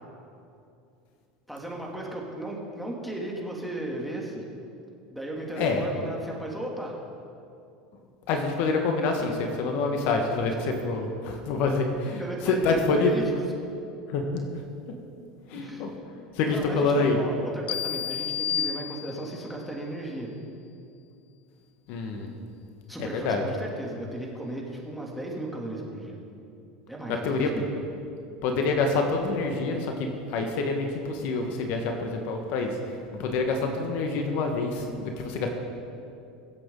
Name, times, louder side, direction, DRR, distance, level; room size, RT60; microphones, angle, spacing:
voice 1, 1.5-4.5 5.1-7.0 12.2-13.2 15.5-15.9 16.5-20.3 22.9-26.2 26.9-27.7, right 1 dB, ahead, -2 dB, 3.0 m, -35 dB
voice 2, 8.3-13.2 14.1-14.5 15.5-15.9 16.3-17.2 21.9-22.3 23.0-23.4 27.1-27.5 28.4-35.5, left 3 dB, 60° left, 3 dB, 1.6 m, -27 dB
sound 1, 17.7-19.5, left 9 dB, 45° left, 0.5 m, -31 dB
23.5 x 8.2 x 4.0 m, 2.6 s
hypercardioid pair, 90°, 3 cm